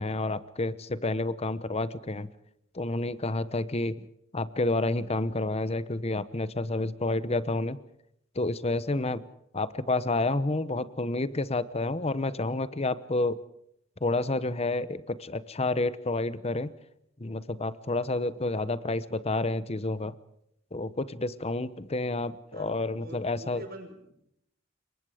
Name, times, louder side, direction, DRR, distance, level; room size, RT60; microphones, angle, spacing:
voice 1, 0.0-2.3 2.7-4.1 4.3-7.8 8.3-9.2 9.5-13.4 14.0-16.7 17.2-20.1 20.7-23.6, left 2 dB, 30° left, 15 dB, 0.9 m, -29 dB
voice 2, 22.5-24.1, right 1 dB, 50° right, 6 dB, 5.0 m, -45 dB
28.0 x 23.0 x 5.0 m, 0.76 s
head